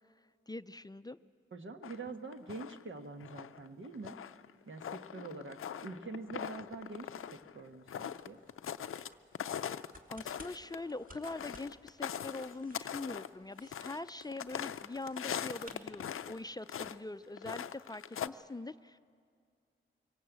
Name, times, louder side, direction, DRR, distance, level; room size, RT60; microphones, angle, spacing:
voice 1, 0.5-1.2 10.1-19.0, left 2 dB, 20° left, 12 dB, 0.5 m, -43 dB
voice 2, 1.5-4.2 4.7-8.4, right 3 dB, 70° right, 6 dB, 1.4 m, -45 dB
sound 1, 1.8-2.9 3.2-9.1 9.3-16.4 16.6-17.0 17.3-18.3, left 9 dB, 90° left, 0.5 m, -41 dB
sound 2, 6.0-16.6, right 1 dB, 40° right, 2.4 m, -62 dB
24.0 x 18.0 x 8.1 m, 2.2 s
cardioid pair, 50°, 21 cm